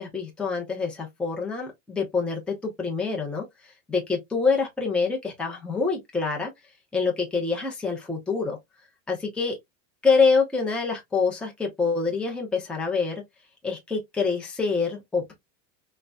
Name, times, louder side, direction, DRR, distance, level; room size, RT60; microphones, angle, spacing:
voice 1, 0.0-3.4 3.9-6.5 6.9-8.6 9.1-9.6 10.0-13.2 13.6-15.3, left 4 dB, ahead, 0.5 m, -26 dB
3.8 x 2.1 x 2.3 m
supercardioid pair, 140°, 42 cm